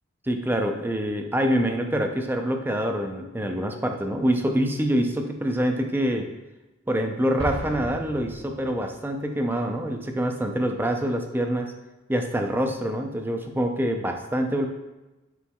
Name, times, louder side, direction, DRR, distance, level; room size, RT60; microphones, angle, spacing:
voice 1, 0.3-6.3 6.9-11.7 12.1-14.7, equal, 10° right, 4 dB, 0.5 m, -25 dB
Explosion, 7.4-9.1, right 1 dB, 60° right, 1.0 m, -35 dB
10.0 x 4.6 x 2.3 m, 1.1 s
head